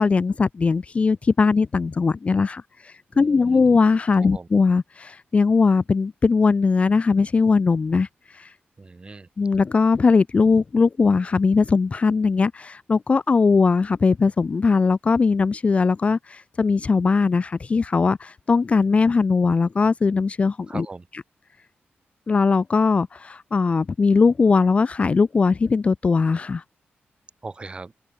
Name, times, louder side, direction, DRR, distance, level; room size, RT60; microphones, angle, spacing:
voice 1, 0.0-8.1 8.3-8.5 9.4-20.9 22.3-26.6, left 4 dB, 35° left, 1.0 m, -20 dB
voice 2, 3.1-3.6 4.2-4.5 8.8-9.3 20.7-21.1 27.4-27.9, right 3 dB, 25° right, 6.7 m, -39 dB
open air
wide cardioid pair, 165°, 4 cm